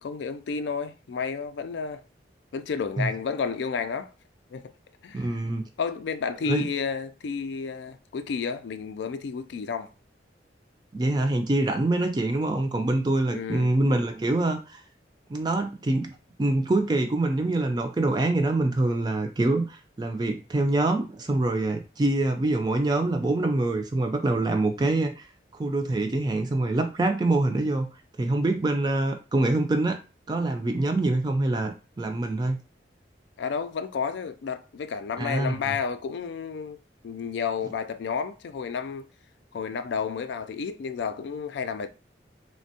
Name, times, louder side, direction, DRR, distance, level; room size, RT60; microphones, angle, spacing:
voice 1, 0.0-2.0 2.5-4.1 4.5-4.6 5.0-5.3 5.8-9.9 13.3-13.7 33.4-36.8 37.0-39.1 39.5-41.9, left 5 dB, 75° left, 0.3 m, -31 dB
voice 2, 5.1-5.7 6.4-6.7 10.9-14.8 15.3-25.3 25.5-27.9 28.2-30.0 30.3-32.6 35.2-35.8, right 2 dB, 25° right, 0.3 m, -25 dB
3.3 x 2.1 x 2.7 m
head